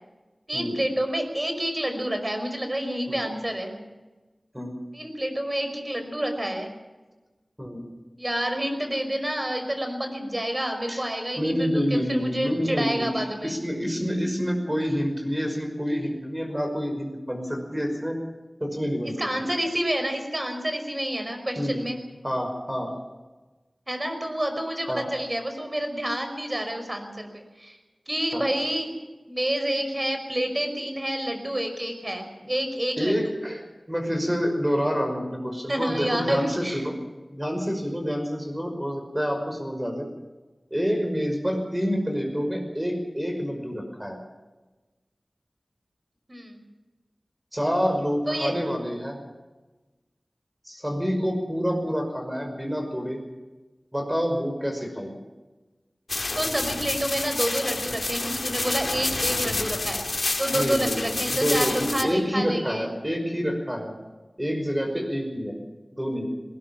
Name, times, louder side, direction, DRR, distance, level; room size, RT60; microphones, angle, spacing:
voice 1, 0.5-3.8 4.9-6.7 8.2-13.5 19.2-22.0 23.9-27.8 28.1-28.9 29.3-33.3 35.7-36.9 46.3-46.6 48.3-48.6 56.4-62.9, right 1 dB, 30° right, 6 dB, 5.5 m, -29 dB
voice 2, 11.4-18.2 18.6-19.1 19.4-19.5 21.6-21.8 22.2-23.0 24.9-25.1 28.3-28.4 33.0-37.0 37.3-40.1 40.7-44.2 47.5-49.2 50.7-53.2 53.9-55.2 60.5-63.9 64.4-65.6 65.9-66.3, equal, 10° right, 3 dB, 5.7 m, -27 dB
sound 1, 56.1-62.0, left 2 dB, 75° left, 2.8 m, -28 dB
19.5 x 19.0 x 7.4 m, 1.2 s
wide cardioid pair, 55°, 0 cm